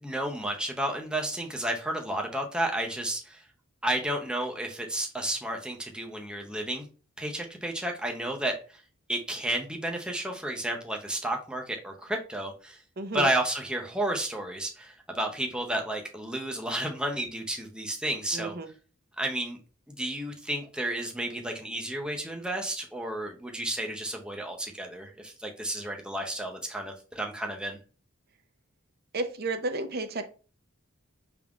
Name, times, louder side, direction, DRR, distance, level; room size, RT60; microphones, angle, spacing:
voice 1, 0.0-3.4 3.8-6.9 7.2-8.6 9.1-12.8 13.1-18.6 19.2-19.6 19.9-27.8, right 1 dB, 5° right, 2 dB, 0.6 m, -32 dB
voice 2, 13.0-13.3 18.3-18.7 29.1-30.3, right 2 dB, 50° right, 9 dB, 0.7 m, -32 dB
5.8 x 3.6 x 2.4 m, 0.36 s
head